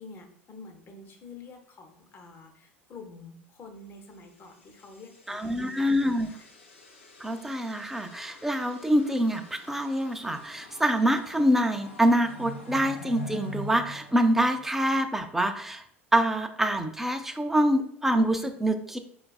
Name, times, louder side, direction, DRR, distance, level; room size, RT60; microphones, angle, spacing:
voice 1, 0.0-6.4, left 3 dB, 35° left, 3 dB, 0.7 m, -48 dB
sound 1, 4.3-15.0, equal, 85° left, 0.7 m, -45 dB
voice 2, 5.3-6.3 7.2-15.8 16.1-19.0, equal, 5° right, 7 dB, 0.4 m, -25 dB
4.5 x 2.3 x 2.2 m, 0.67 s
figure-of-eight pair, 75°, 7 cm